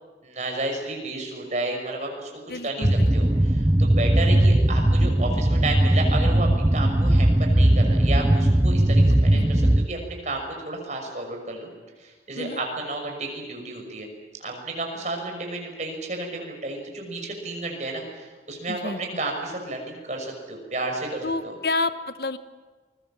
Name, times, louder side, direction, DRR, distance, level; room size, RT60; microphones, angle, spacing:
voice 1, 0.2-2.3 2.6-11.7 12.0-14.1 14.4-21.5, right 2 dB, 40° right, 2 dB, 6.1 m, -32 dB
voice 2, 2.5-3.1 9.3-9.5 12.4-12.6 18.7-19.0 21.2-22.4, left 2 dB, 60° left, 12 dB, 1.0 m, -29 dB
sound 1, 2.8-9.9, right 1 dB, 15° right, 0.7 m, -19 dB
28.0 x 22.0 x 7.4 m, 1.4 s
head